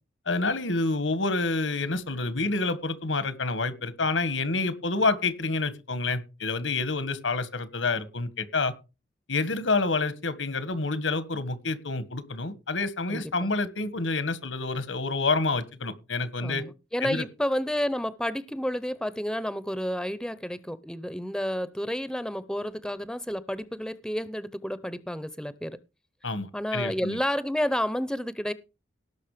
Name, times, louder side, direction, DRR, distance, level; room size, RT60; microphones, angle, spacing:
voice 1, 0.2-8.7 9.3-16.6 17.0-17.2 26.2-27.2, left 3 dB, 85° left, 1.7 m, -28 dB
voice 2, 13.1-13.5 16.4-25.8 26.5-28.5, equal, 5° left, 0.6 m, -30 dB
18.0 x 6.3 x 5.0 m
head